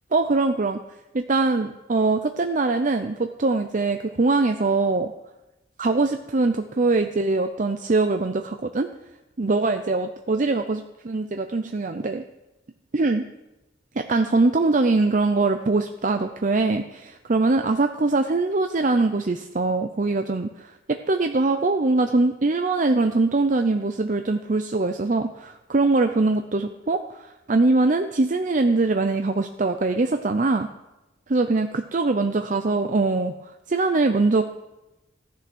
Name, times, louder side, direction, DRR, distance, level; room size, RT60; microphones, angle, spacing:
voice 1, 0.1-0.8 1.1-5.1 5.8-8.9 9.4-12.2 12.9-13.2 14.0-30.7 31.3-34.4, right 3 dB, 40° right, 7 dB, 0.6 m, -22 dB
15.0 x 10.5 x 6.1 m, 1.0 s
head